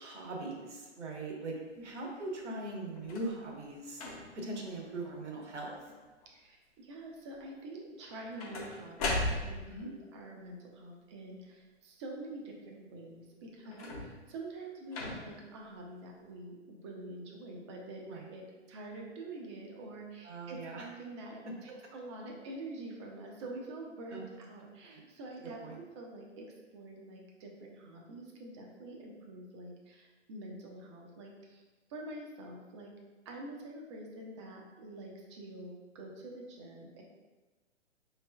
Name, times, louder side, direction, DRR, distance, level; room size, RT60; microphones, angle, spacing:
voice 1, 0.0-1.5 1.8-4.0 4.3-5.7 9.7-9.9 13.8-13.9 18.1-18.3 20.2-20.9 24.1-24.2 24.8-25.0 25.6-25.8, right 2 dB, 70° right, -1 dB, 1.2 m, -40 dB
sound 1, 3.0-3.4 3.9-4.5 5.1-5.4 5.7-6.3 8.0-9.8 13.7-14.3 14.9-15.5 16.3-16.4, left 2 dB, 30° left, 0.7 m, -38 dB
voice 2, 6.3-31.6 31.9-32.9 33.3-37.0, right 2 dB, 25° right, 0 dB, 0.5 m, -46 dB
4.9 x 3.2 x 2.2 m, 1.2 s
figure-of-eight pair, 125°, 37 cm